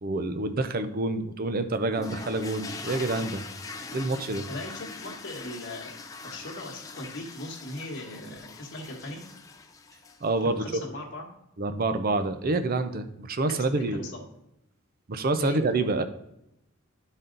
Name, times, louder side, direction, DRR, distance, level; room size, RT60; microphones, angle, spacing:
voice 1, 0.0-3.4 3.9-4.5 10.2-10.8 11.6-14.0 15.1-16.0, right 2 dB, 45° right, 10 dB, 0.6 m, -27 dB
sound 1, 1.9-10.4, left 4 dB, 15° left, 0.5 m, -42 dB
voice 2, 4.5-5.9 6.2-9.2 10.4-11.3 13.4-14.2 15.4-15.6, left 1 dB, 60° left, 1 dB, 1.3 m, -39 dB
12.0 x 4.1 x 3.8 m, 0.84 s
head